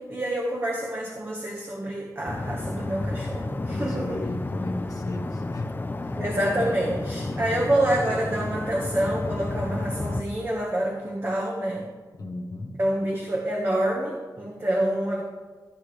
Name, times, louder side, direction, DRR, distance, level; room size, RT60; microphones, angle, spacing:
voice 1, 0.0-4.2 6.2-11.8 12.8-15.2, right 1 dB, 35° right, -1 dB, 1.5 m, -27 dB
sound 1, 2.3-10.2, left 2 dB, 30° left, 0.7 m, -31 dB
voice 2, 3.7-5.7 6.0-6.2 7.2-7.7 12.2-12.7, left 2 dB, 60° left, -1 dB, 1.5 m, -35 dB
14.0 x 9.8 x 3.4 m, 1.4 s
wide cardioid pair, 85°, 7 cm